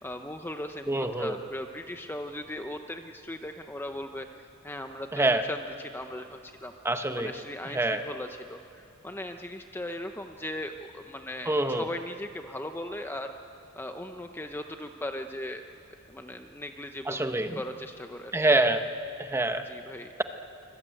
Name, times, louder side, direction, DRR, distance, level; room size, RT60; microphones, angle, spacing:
voice 1, 0.0-4.3 4.6-6.7 7.2-13.3 13.8-15.6 16.1-18.4 19.6-20.1, left 1 dB, 10° left, 6 dB, 0.7 m, -38 dB
voice 2, 0.9-1.4 5.1-5.4 6.8-7.3 7.7-8.0 11.5-11.9 17.1-17.6 18.3-18.8 19.2-19.6, right 2 dB, 10° right, 7 dB, 1.0 m, -25 dB
25.0 x 21.0 x 9.0 m, 2.6 s
head